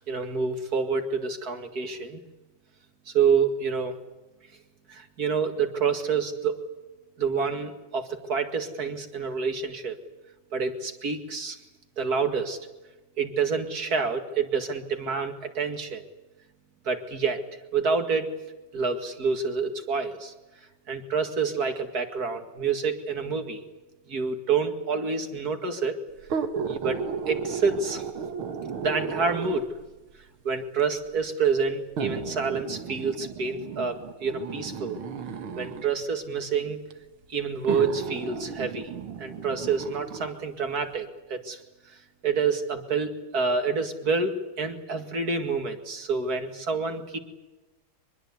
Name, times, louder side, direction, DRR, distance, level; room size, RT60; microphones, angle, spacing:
voice 1, 0.0-2.2 3.1-3.9 4.9-6.6 7.2-10.0 10.5-11.6 12.0-12.6 13.2-16.0 16.8-17.4 17.7-18.3 18.7-20.3 20.9-23.6 24.1-26.0 26.7-28.0 28.8-29.7 30.4-35.0 35.6-36.8 37.3-38.9 39.2-41.6 41.9-42.0 42.2-47.2, right 5 dB, 50° right, 6 dB, 2.5 m, -28 dB
sound 1, 26.2-29.9 30.8-30.9 32.0-35.9 36.9-37.0 37.6-40.3 40.8-40.9, right 6 dB, 90° right, 2.3 m, -34 dB
24.0 x 21.5 x 8.2 m, 1.1 s
omnidirectional pair, 2.2 m